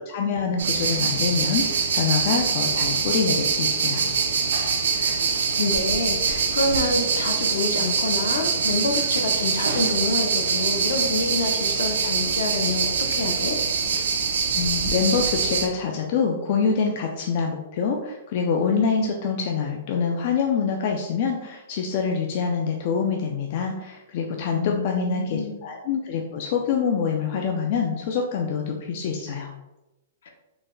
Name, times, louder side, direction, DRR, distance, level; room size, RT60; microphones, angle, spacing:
voice 1, 0.0-4.0 14.5-29.5, left 5 dB, 35° left, 1 dB, 0.3 m, -25 dB
sound 1, 0.6-15.7, right 5 dB, 80° right, 0.5 m, -24 dB
voice 2, 5.6-13.6 24.5-25.6, left 3 dB, 65° left, 4 dB, 0.7 m, -27 dB
3.9 x 2.2 x 3.7 m, 0.98 s
hypercardioid pair, 175°, 0 cm